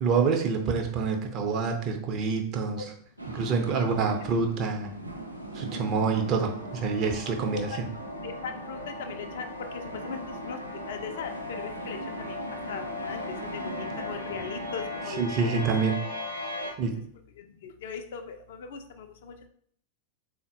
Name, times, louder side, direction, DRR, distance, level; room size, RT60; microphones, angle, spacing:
voice 1, 0.0-2.8 3.3-4.9 5.5-7.7 15.2-16.0 16.8-17.0, right 5 dB, 35° right, 3 dB, 0.5 m, -27 dB
sound 1, 3.2-15.2, right 1 dB, 85° right, 0.4 m, -41 dB
sound 2, 6.1-16.7, left 2 dB, 80° left, 0.7 m, -39 dB
voice 2, 8.2-10.6 10.9-13.2 13.5-15.3 17.0-17.1 17.4-19.5, left 6 dB, 55° left, 7 dB, 0.3 m, -39 dB
3.7 x 2.1 x 2.6 m, 0.62 s
figure-of-eight pair, 90°, 0 cm